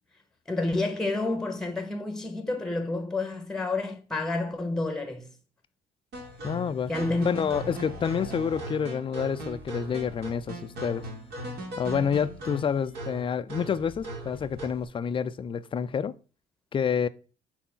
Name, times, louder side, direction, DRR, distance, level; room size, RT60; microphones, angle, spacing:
voice 1, 0.5-5.3 6.9-7.3, left 2 dB, 5° left, 0.9 m, -29 dB
sound 1, 6.1-14.8, right 1 dB, 70° right, 2.3 m, -38 dB
voice 2, 6.4-6.9 7.2-11.1 11.8-16.1 16.7-17.1, left 7 dB, 30° left, 0.4 m, -28 dB
4.4 x 4.1 x 5.6 m
cardioid pair, 110°, 17 cm